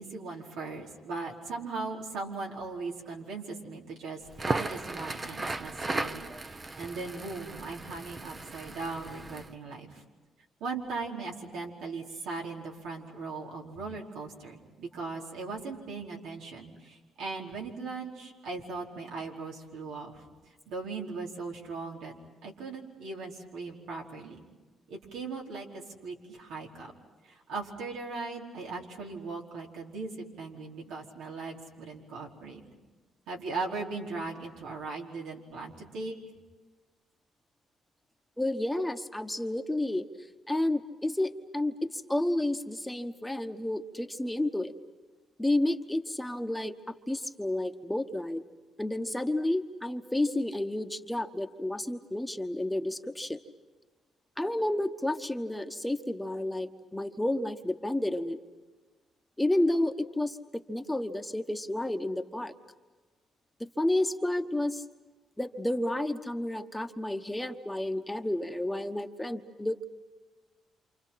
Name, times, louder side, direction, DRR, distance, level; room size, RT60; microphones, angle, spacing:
voice 1, 0.0-10.0 10.6-20.2 20.7-22.1 22.4-24.4 24.9-26.9 27.2-32.6 33.3-36.1, right 3 dB, 90° right, -1 dB, 4.6 m, -39 dB
Crackle, 4.3-9.5, right 2 dB, 25° right, 1.0 m, -36 dB
voice 2, 38.4-40.1 40.5-44.7 45.4-46.7 47.1-48.4 48.8-53.4 54.4-58.4 59.4-62.5 63.6-64.8 65.4-69.8, left 1 dB, 10° left, 6 dB, 1.3 m, -31 dB
28.5 x 27.5 x 5.9 m, 1.3 s
cardioid pair, 90°, 0 cm